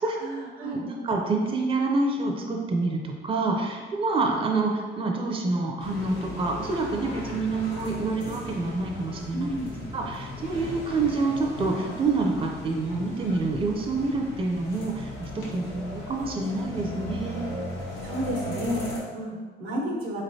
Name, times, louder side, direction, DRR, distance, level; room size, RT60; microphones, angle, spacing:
voice 1, 0.0-0.8 9.3-9.7 18.0-20.2, equal, 90° right, -2 dB, 0.9 m, -31 dB
voice 2, 0.6-9.5 9.9-17.6, right 3 dB, 25° right, 1 dB, 0.5 m, -27 dB
sound 1, 5.8-19.0, left 1 dB, 85° left, 1.0 m, -37 dB
3.8 x 3.2 x 2.7 m, 1.5 s
cardioid pair, 90°, 20 cm